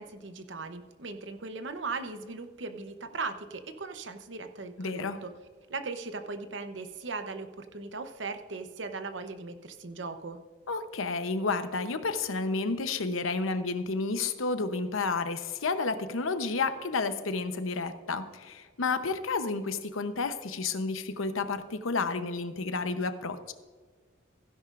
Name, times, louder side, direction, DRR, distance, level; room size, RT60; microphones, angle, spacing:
voice 1, 0.0-5.3 5.7-10.4, right 3 dB, 65° right, 8 dB, 0.8 m, -38 dB
voice 2, 4.8-5.2 10.7-23.5, left 4 dB, 90° left, 10 dB, 0.8 m, -31 dB
16.0 x 10.5 x 2.5 m, 1.5 s
head